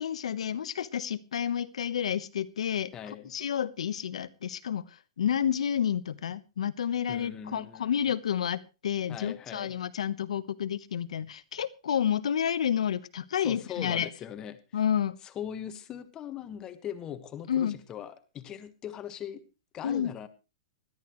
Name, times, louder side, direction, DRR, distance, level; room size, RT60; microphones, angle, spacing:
voice 1, 0.0-2.9 3.3-14.1 14.7-15.2 17.5-17.8 19.8-20.1, left 9 dB, 85° left, 14 dB, 1.1 m, -30 dB
voice 2, 2.9-3.3 7.1-8.0 9.1-9.7 13.4-14.6 15.2-19.4 19.7-20.3, left 9 dB, 20° left, 10 dB, 1.4 m, -40 dB
20.5 x 13.0 x 3.1 m, 0.30 s
hypercardioid pair, 155°, 3 cm